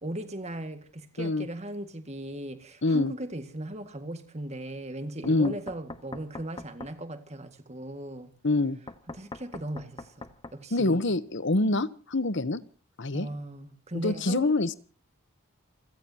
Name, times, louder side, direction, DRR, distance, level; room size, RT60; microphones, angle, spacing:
voice 1, 0.0-8.3 9.1-11.1 13.1-14.6, right 1 dB, 30° right, 1.9 m, -38 dB
voice 2, 2.8-3.1 5.2-5.5 8.4-8.8 10.7-12.6 13.0-13.3 14.0-14.7, left 2 dB, 55° left, 1.0 m, -25 dB
Knock, 5.2-7.0 8.9-10.6, left 2 dB, 20° left, 1.0 m, -42 dB
29.5 x 16.0 x 2.9 m
head